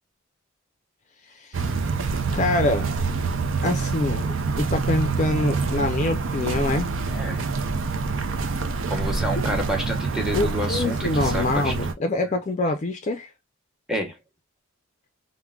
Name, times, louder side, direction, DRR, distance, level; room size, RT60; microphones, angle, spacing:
voice 1, 1.4-1.7 2.3-2.9 3.6-4.3 4.6-6.9 10.3-13.3, left 2 dB, 35° left, 0.4 m, -25 dB
sound 1, 1.5-11.9, right 4 dB, 70° right, 0.5 m, -26 dB
voice 2, 7.1-7.5 8.9-11.7 12.2-12.3 13.9-14.2, equal, ahead, 0.9 m, -29 dB
3.6 x 2.1 x 2.2 m
head